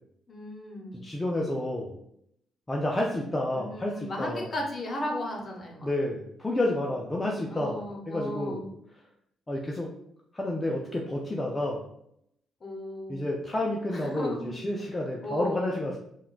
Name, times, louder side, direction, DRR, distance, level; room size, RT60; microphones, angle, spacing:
voice 1, 0.3-1.0 3.5-5.9 7.5-8.6 12.6-13.3 13.9-14.5 15.2-15.9, left 1 dB, 40° left, 0 dB, 0.8 m, -35 dB
voice 2, 1.0-2.0 2.7-4.5 5.8-8.7 9.5-9.9 10.3-11.8 13.1-16.0, left 1 dB, 15° left, -2 dB, 0.4 m, -30 dB
3.6 x 2.2 x 2.5 m, 0.74 s
cardioid pair, 90°, 0 cm